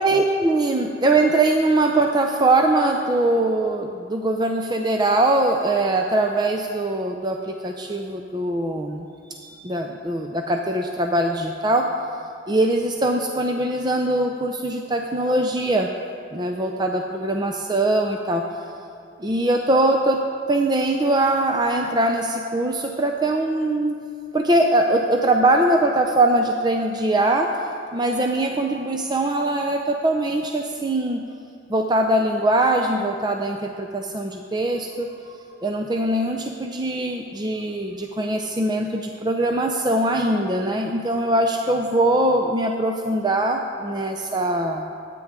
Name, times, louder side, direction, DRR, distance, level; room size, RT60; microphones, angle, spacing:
voice 1, 0.0-9.1 9.3-11.9 12.5-15.9 16.3-18.4 19.2-20.2 20.5-24.0 24.3-27.5 27.9-31.2 31.7-44.9, right 2 dB, 20° right, 3 dB, 0.5 m, -22 dB
22.5 x 9.2 x 3.7 m, 2.4 s
head